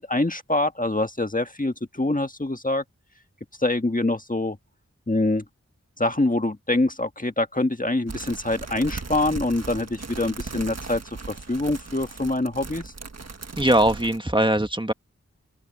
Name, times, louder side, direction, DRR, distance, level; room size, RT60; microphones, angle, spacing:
voice 1, 0.0-2.8 3.6-4.6 5.1-5.4 6.0-11.0 11.3-12.9, left 2 dB, 30° left, 1.6 m, -25 dB
sound 1, 8.1-14.2, right 3 dB, 60° right, 1.5 m, -37 dB
voice 2, 13.6-14.9, right 1 dB, 15° right, 1.7 m, -21 dB
wide cardioid pair, 60°, 29 cm